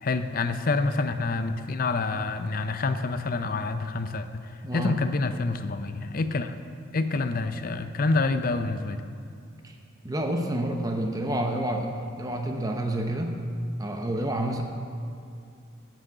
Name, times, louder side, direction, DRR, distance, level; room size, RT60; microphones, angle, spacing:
voice 1, 0.0-4.4 4.7-6.6 6.9-9.0, left 3 dB, 40° left, 10 dB, 0.5 m, -27 dB
voice 2, 4.6-5.0 9.6-9.7 10.0-11.9 12.2-13.4 13.8-14.6, right 1 dB, 15° right, 3 dB, 0.8 m, -28 dB
10.5 x 6.1 x 7.8 m, 2.4 s
head